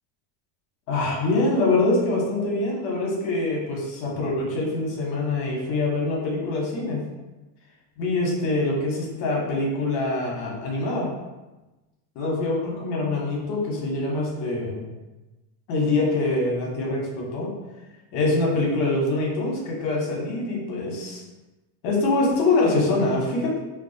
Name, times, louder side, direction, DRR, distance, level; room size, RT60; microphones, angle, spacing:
voice 1, 0.9-7.0 8.0-11.1 12.1-14.8 15.7-17.5 18.1-21.2 21.8-23.6, left 2 dB, 55° left, -3 dB, 0.9 m, -24 dB
2.3 x 2.3 x 2.6 m, 1.1 s
supercardioid pair, 145°, 50 cm